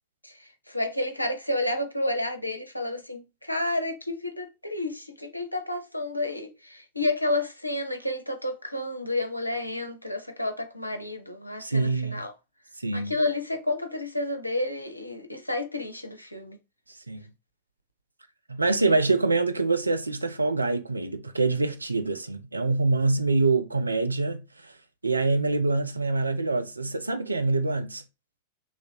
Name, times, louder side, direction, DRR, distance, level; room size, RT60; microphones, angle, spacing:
voice 1, 0.2-12.3 12.9-16.6 18.8-19.0, left 2 dB, 90° left, 0.5 m, -30 dB
voice 2, 11.6-12.2 12.8-13.1 17.1-17.2 18.5-24.7 25.0-28.0, right 3 dB, 80° right, 0.3 m, -25 dB
3.1 x 2.4 x 2.7 m
figure-of-eight pair, 90°, 0 cm